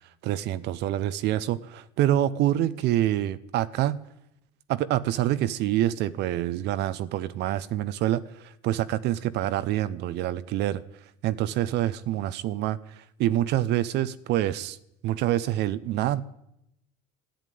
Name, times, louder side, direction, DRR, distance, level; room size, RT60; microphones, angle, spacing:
voice 1, 0.2-4.0 4.7-10.8 11.2-14.8 15.0-16.2, right 13 dB, 65° right, 15 dB, 0.8 m, -26 dB
13.0 x 10.5 x 9.4 m, 0.82 s
supercardioid pair, 115°, 19 cm